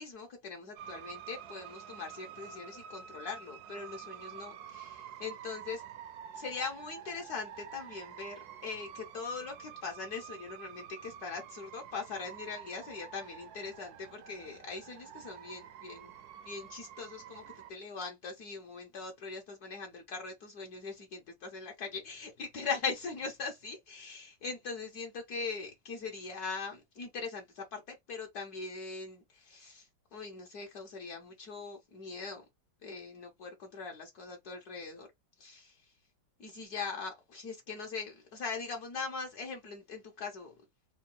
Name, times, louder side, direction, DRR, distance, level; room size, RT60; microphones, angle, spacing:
voice 1, 0.0-5.8 6.3-16.1 16.4-17.4 17.7-29.9 30.1-32.4 32.8-35.1 35.4-35.7 36.4-40.5, left 4 dB, 65° left, 1.3 m, -41 dB
sound 1, 0.8-17.7, right 9 dB, 70° right, 1.0 m, -49 dB
3.8 x 2.3 x 3.7 m
omnidirectional pair, 1.9 m